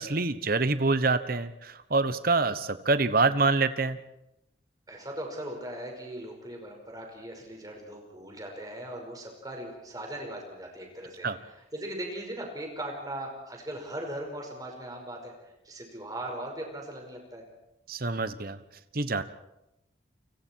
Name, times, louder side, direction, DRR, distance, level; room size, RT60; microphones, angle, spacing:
voice 1, 0.0-4.0 11.2-11.4 17.9-18.6 18.9-19.2, right 3 dB, 50° right, 12 dB, 1.1 m, -26 dB
voice 2, 4.9-11.3 11.7-15.3 15.6-17.4, right 1 dB, 20° right, 1 dB, 5.4 m, -39 dB
29.5 x 25.0 x 4.6 m, 0.89 s
head